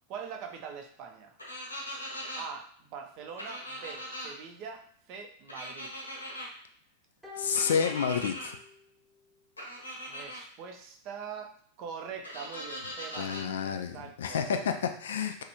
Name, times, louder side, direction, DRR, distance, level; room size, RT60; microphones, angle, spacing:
voice 1, 0.1-1.3 2.4-5.9 10.0-14.4 15.2-15.3, right 6 dB, 40° right, 3 dB, 0.5 m, -43 dB
sound 1, 1.4-2.4 3.4-4.3 5.5-6.5 7.5-8.5 9.6-10.4 12.2-13.4, equal, 80° left, 0.7 m, -40 dB
sound 2, 7.2-8.9 9.2-9.3, left 6 dB, 5° right, 0.9 m, -47 dB
voice 2, 7.4-8.6 13.2-15.4, left 7 dB, 65° left, 6 dB, 0.3 m, -30 dB
3.1 x 2.5 x 2.8 m, 0.62 s
figure-of-eight pair, 90°, 0 cm